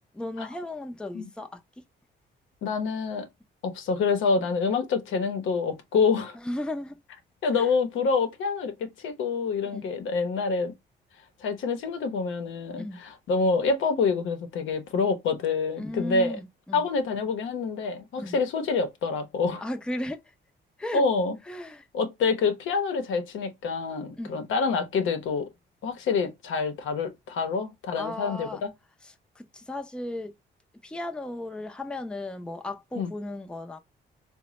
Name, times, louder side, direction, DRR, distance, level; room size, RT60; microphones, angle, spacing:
voice 1, 0.1-1.8 6.3-7.0 7.6-7.7 9.6-9.9 12.8-13.0 15.8-16.8 18.2-18.4 19.6-20.2 20.8-21.1 21.5-21.9 24.2-24.4 28.0-28.6 29.0-30.3 30.8-33.8, left 1 dB, 5° left, 0.5 m, -35 dB
voice 2, 2.6-3.3 3.6-6.4 7.4-10.7 11.4-16.4 16.7-19.6 20.9-21.4 21.9-25.5 25.8-28.7 32.9-33.1, left 4 dB, 80° left, 0.8 m, -27 dB
3.8 x 2.1 x 3.0 m
cardioid pair, 90°, 20 cm